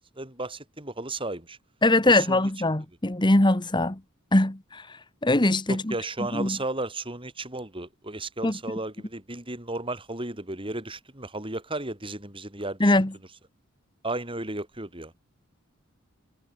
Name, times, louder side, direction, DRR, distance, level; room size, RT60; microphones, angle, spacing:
voice 1, 0.2-1.6 2.1-2.4 5.7-12.9 14.0-15.1, right 2 dB, 25° right, 6.6 m, -34 dB
voice 2, 1.8-4.0 4.3-4.8 5.2-5.9 6.3-6.6 8.4-8.5 12.8-13.1, left 2 dB, 20° left, 1.4 m, -22 dB
head